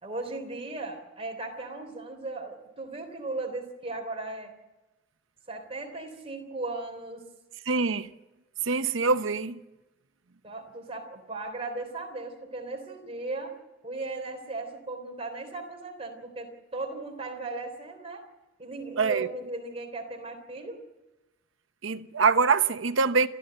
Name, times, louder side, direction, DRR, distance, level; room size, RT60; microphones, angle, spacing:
voice 1, 0.0-4.5 5.5-7.2 10.4-13.6 13.8-18.2 18.6-20.8, right 2 dB, 30° right, 3.3 m, -37 dB
voice 2, 7.7-8.1 8.6-9.6 19.0-19.3 21.8-23.3, right 5 dB, 80° right, 0.9 m, -24 dB
29.0 x 13.5 x 7.8 m
head